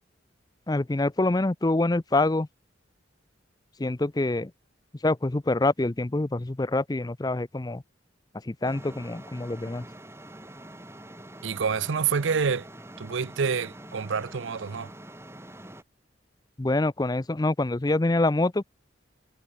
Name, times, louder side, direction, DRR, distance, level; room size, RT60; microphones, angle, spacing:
voice 1, 0.7-2.5 3.8-4.5 5.0-7.8 8.4-9.8 16.6-18.6, left 2 dB, 20° left, 0.5 m, -25 dB
sound 1, 8.6-15.8, right 1 dB, 15° right, 3.3 m, -45 dB
voice 2, 11.4-12.7 13.0-14.9, right 6 dB, 75° right, 0.6 m, -27 dB
head